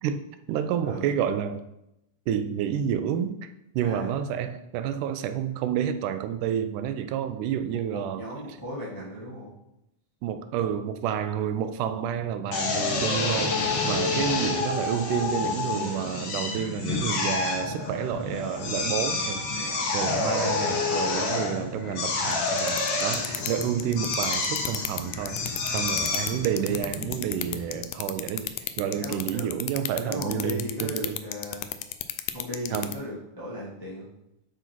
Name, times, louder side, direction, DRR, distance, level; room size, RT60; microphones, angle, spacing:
voice 1, 0.0-1.6 2.3-3.4 3.7-8.2 10.2-28.5 28.8-31.2 32.7-32.9, right 9 dB, 90° right, 9 dB, 2.2 m, -29 dB
voice 2, 3.8-4.1 7.7-9.6 20.1-20.3 25.7-26.0 28.9-31.7 32.3-34.1, equal, 10° left, -6 dB, 1.0 m, -37 dB
Drill, 12.5-27.8, left 3 dB, 60° left, 1.8 m, -29 dB
sound 1, 22.3-32.9, left 15 dB, 80° left, 1.8 m, -31 dB
10.0 x 3.8 x 4.5 m, 0.86 s
omnidirectional pair, 3.6 m